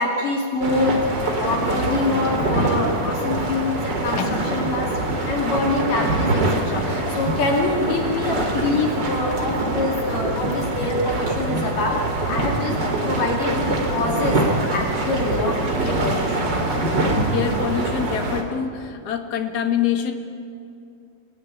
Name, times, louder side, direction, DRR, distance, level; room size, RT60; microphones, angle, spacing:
voice 1, 0.0-12.8 13.0-16.6, left 2 dB, 60° left, 0 dB, 4.0 m, -25 dB
sound 1, 0.6-18.4, right 2 dB, 30° right, 3.1 m, -24 dB
voice 2, 17.3-20.1, left 8 dB, 40° left, 5 dB, 1.6 m, -25 dB
27.5 x 18.0 x 9.9 m, 2.5 s
omnidirectional pair, 4.4 m